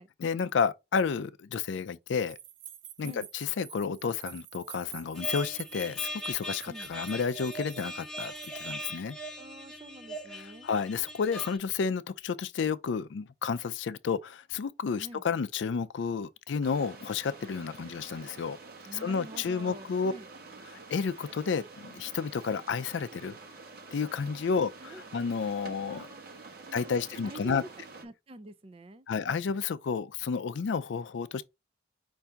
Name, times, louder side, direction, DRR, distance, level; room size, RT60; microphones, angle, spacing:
voice 1, 0.2-2.4 3.0-8.3 8.6-9.2 10.3-18.6 18.9-20.1 20.7-23.3 23.9-26.1 26.7-27.6 29.1-31.4, left 6 dB, 70° left, 0.4 m, -31 dB
sound 1, 2.1-9.1, right 11 dB, 80° right, 0.7 m, -49 dB
sound 2, 5.1-11.6, right 1 dB, ahead, 0.8 m, -40 dB
voice 2, 9.4-10.7 15.0-15.2 18.8-20.3 24.3-24.5 24.8-25.0 25.4-27.7 28.0-29.1, right 2 dB, 30° right, 0.4 m, -47 dB
sound 3, 16.6-28.1, right 3 dB, 50° right, 1.0 m, -48 dB
5.6 x 2.6 x 3.4 m
head